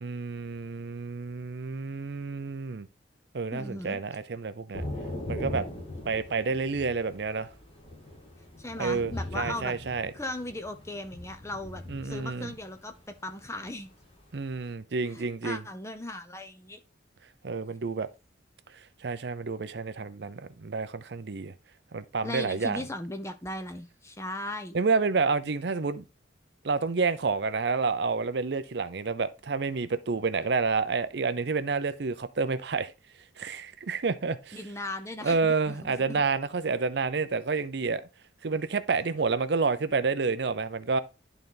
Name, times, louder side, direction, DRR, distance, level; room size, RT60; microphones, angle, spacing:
voice 1, 0.0-2.9 3.3-4.8 5.3-5.6 6.0-7.5 8.8-10.1 11.9-12.5 14.3-15.6 17.4-18.1 19.0-21.5 21.9-22.8 24.7-26.0 26.6-32.9 33.4-34.6 35.2-38.0 38.4-41.0, right 4 dB, 60° right, 0.5 m, -29 dB
voice 2, 3.5-4.0 8.6-9.7 10.1-13.9 15.1-16.8 22.2-24.8 34.5-36.2, left 1 dB, 15° left, 0.7 m, -38 dB
Thunder / Rain, 4.7-14.7, left 1 dB, 30° left, 2.0 m, -40 dB
11.0 x 4.0 x 3.9 m
head